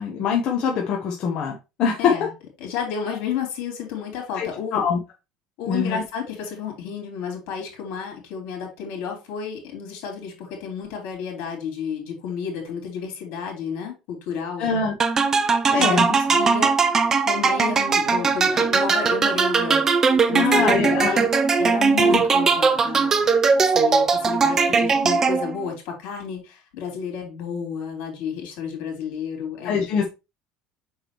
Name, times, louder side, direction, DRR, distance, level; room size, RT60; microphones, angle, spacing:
voice 1, 0.0-2.1 4.4-5.0 5.7-6.0 14.6-14.9 15.3-15.4 15.7-16.1 20.3-21.4 22.1-22.2 29.6-30.1, left 6 dB, 45° left, 1.1 m, -24 dB
voice 2, 2.0-2.3 2.6-4.8 5.6-14.7 15.8-16.7 17.2-19.8 20.3-21.2 21.6-23.1 23.7-29.8, left 7 dB, 70° left, 3.5 m, -31 dB
sound 1, 15.0-25.7, right 5 dB, 20° right, 0.5 m, -20 dB
6.3 x 4.9 x 3.0 m
cardioid pair, 155°, 2 cm